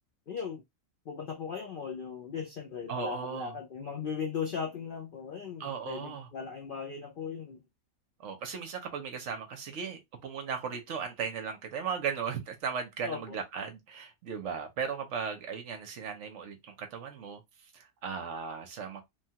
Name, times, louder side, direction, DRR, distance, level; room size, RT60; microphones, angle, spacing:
voice 1, 0.3-0.6 1.1-7.6 13.0-13.4, left 6 dB, 65° left, 0.5 m, -38 dB
voice 2, 2.9-3.5 5.6-6.3 8.2-19.0, right 6 dB, 65° right, 0.9 m, -37 dB
3.1 x 2.2 x 2.8 m
omnidirectional pair, 1.5 m